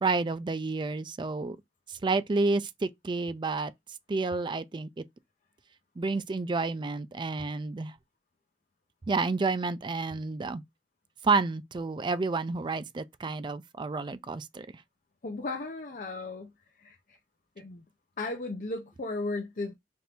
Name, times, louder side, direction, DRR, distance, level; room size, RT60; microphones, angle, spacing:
voice 1, 0.0-1.6 1.9-3.7 4.1-5.0 6.0-7.9 9.1-10.6 11.2-14.7, right 3 dB, 25° right, 0.4 m, -30 dB
voice 2, 15.2-16.5 16.8-17.2 17.6-17.8 18.2-19.7, left 2 dB, 45° left, 0.6 m, -35 dB
4.3 x 2.6 x 3.3 m
head